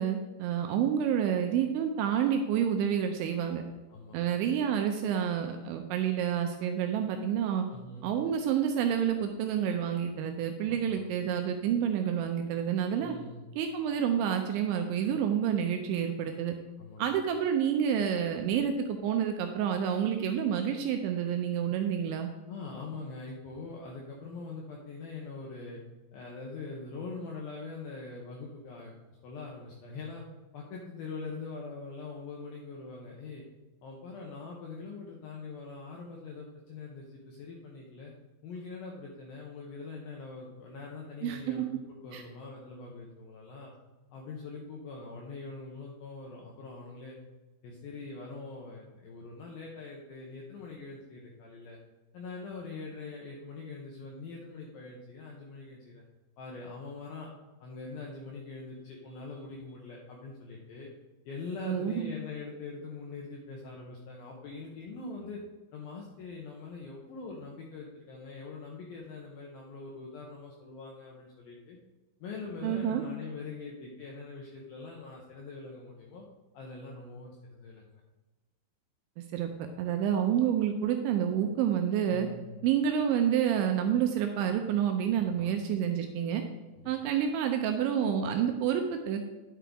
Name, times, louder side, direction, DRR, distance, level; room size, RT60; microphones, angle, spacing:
voice 1, 0.0-3.6 4.1-7.6 8.0-13.2 13.6-16.5 17.0-22.3 41.2-41.6 42.1-42.2 61.7-62.1 72.6-73.0 79.2-79.5 79.8-82.3 82.6-86.4 86.9-89.3, right 8 dB, 80° right, 5 dB, 2.8 m, -29 dB
voice 2, 7.7-8.1 10.7-11.0 13.0-13.5 16.8-17.0 22.5-25.8 26.1-28.9 29.2-30.2 30.5-33.4 33.8-38.1 38.4-41.7 42.0-43.7 44.1-47.2 47.6-51.8 52.1-56.0 56.4-57.3 57.6-60.9 61.3-65.4 65.7-71.8 72.2-76.2 76.5-77.9 82.1-82.6 85.2-85.5 86.8-87.1, left 4 dB, 85° left, -2 dB, 2.1 m, -43 dB
10.0 x 7.5 x 3.5 m, 1.2 s
omnidirectional pair, 5.6 m